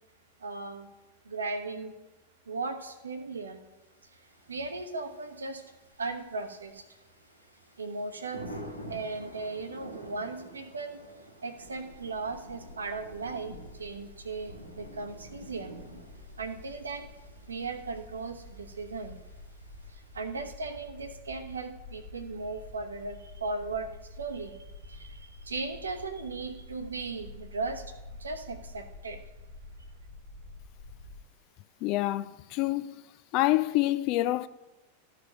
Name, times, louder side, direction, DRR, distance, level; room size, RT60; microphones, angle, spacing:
voice 1, 0.4-0.9 1.2-1.9 2.5-3.6 4.0-4.1 4.5-5.6 6.0-6.8 7.8-8.5 8.9-11.0 11.4-15.7 16.4-17.1 17.5-19.2 19.9-27.8 28.2-29.2, right 3 dB, 75° right, 0.9 m, -37 dB
Thunder / Rain, 4.0-20.6, equal, 90° right, 1.4 m, -49 dB
sound 1, 11.6-31.2, left 2 dB, 80° left, 0.9 m, -49 dB
voice 2, 31.8-33.0 33.3-34.5, left 17 dB, 40° left, 0.3 m, -27 dB
13.0 x 4.9 x 5.8 m
figure-of-eight pair, 90°, 0 cm